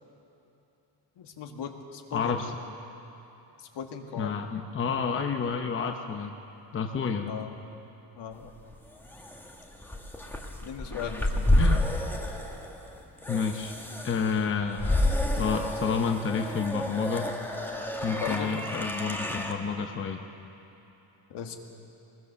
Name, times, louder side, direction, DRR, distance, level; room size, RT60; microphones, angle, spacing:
voice 1, 1.2-2.4 3.6-4.5 7.3-7.6 8.2-8.5 10.6-11.8 18.1-18.5 21.3-21.6, left 7 dB, 70° left, 3 dB, 1.9 m, -38 dB
voice 2, 2.1-2.5 4.2-6.3 6.7-7.4 11.6-11.9 13.3-13.7 14.0-15.0 15.3-17.3 18.0-20.2, left 5 dB, 30° left, 4 dB, 0.8 m, -29 dB
sound 1, 8.5-19.5, left 1 dB, 5° left, 1.3 m, -30 dB
23.0 x 20.5 x 6.9 m, 3.0 s
cardioid pair, 175°, 44 cm